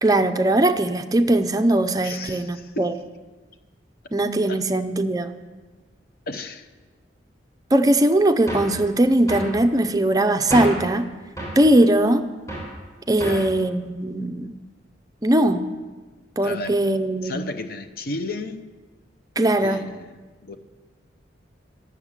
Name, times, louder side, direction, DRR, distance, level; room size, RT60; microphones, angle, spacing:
voice 1, 0.0-2.9 4.1-5.3 7.7-11.1 11.6-12.3 13.1-14.6 15.2-15.6 16.4-17.4 19.4-19.8, right 1 dB, 20° right, 7 dB, 0.5 m, -20 dB
voice 2, 2.0-2.8 4.5-4.6 6.3-6.7 13.2-13.6 16.4-16.8 17.2-18.7 19.6-20.6, left 2 dB, 55° left, 7 dB, 0.7 m, -33 dB
sound 1, 8.5-8.8 9.3-9.6 10.5-10.9 11.4-11.6 12.5-12.8 13.2-13.5, right 1 dB, 20° left, 3.6 m, -30 dB
9.5 x 7.1 x 7.4 m, 1.3 s
head